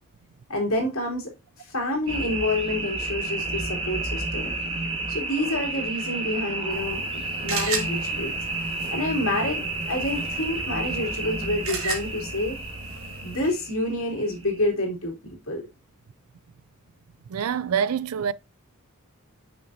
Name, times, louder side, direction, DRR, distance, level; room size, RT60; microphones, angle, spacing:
voice 1, 0.5-1.3 1.6-4.5 5.1-8.3 8.9-12.6 13.2-15.6, left 1 dB, 75° left, 3.0 m, -28 dB
sound 1, 2.1-14.7, right 2 dB, 25° right, 1.5 m, -31 dB
sound 2, 6.7-13.5, right 3 dB, 70° right, 1.8 m, -36 dB
voice 2, 17.3-18.3, right 7 dB, 85° right, 0.4 m, -25 dB
6.1 x 5.9 x 2.7 m
head